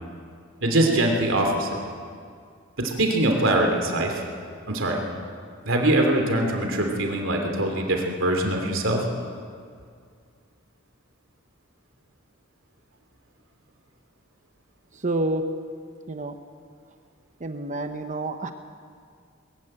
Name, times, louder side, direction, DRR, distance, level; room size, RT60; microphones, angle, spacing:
voice 1, 0.6-1.7 2.8-4.2 4.7-5.0 5.6-9.0, right 1 dB, 75° right, 2 dB, 2.9 m, -23 dB
voice 2, 14.9-15.4 16.1-16.4 17.4-18.5, right 2 dB, 40° right, 7 dB, 0.9 m, -28 dB
21.0 x 14.5 x 9.0 m, 2.1 s
head